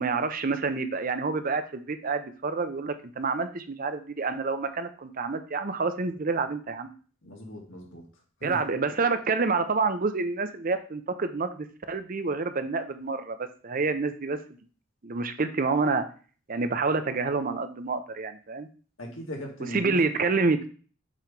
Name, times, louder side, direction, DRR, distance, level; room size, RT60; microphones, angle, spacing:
voice 1, 0.0-6.9 8.4-14.4 15.0-16.0 16.5-18.7 19.7-20.7, right 4 dB, 45° right, 9 dB, 0.6 m, -28 dB
voice 2, 7.2-8.1 8.4-8.6 19.0-20.0, equal, 70° left, 0 dB, 2.0 m, -38 dB
7.5 x 3.1 x 5.2 m, 0.39 s
head